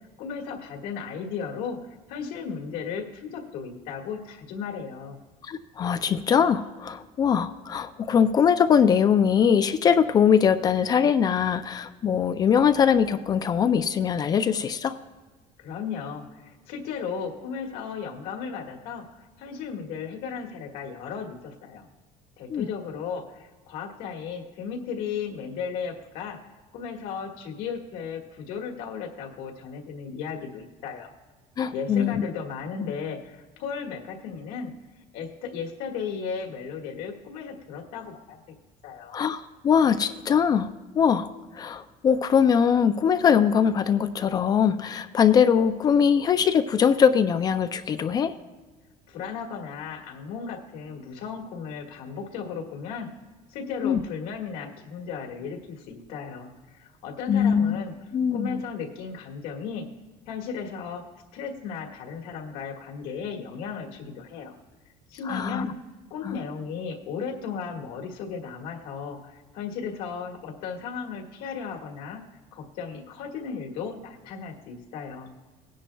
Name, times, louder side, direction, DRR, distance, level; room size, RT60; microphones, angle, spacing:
voice 1, 0.2-1.8 2.1-5.2 15.6-19.0 19.4-21.9 22.4-26.4 26.7-31.1 31.7-34.7 35.1-38.4 38.8-39.2 49.1-53.1 53.5-57.9 58.3-59.9 60.3-61.0 61.3-64.5 65.1-65.7 66.1-72.2 72.5-75.3, left 6 dB, 80° left, 1 dB, 1.8 m, -35 dB
voice 2, 5.4-15.0 22.5-22.7 31.6-32.2 39.1-40.7 41.0-48.3 53.8-54.0 57.3-57.8 58.1-58.6 65.2-65.7 66.2-66.4, left 7 dB, 25° left, 11 dB, 0.3 m, -22 dB
19.0 x 10.0 x 2.3 m, 1.3 s
cardioid pair, 165°, 15 cm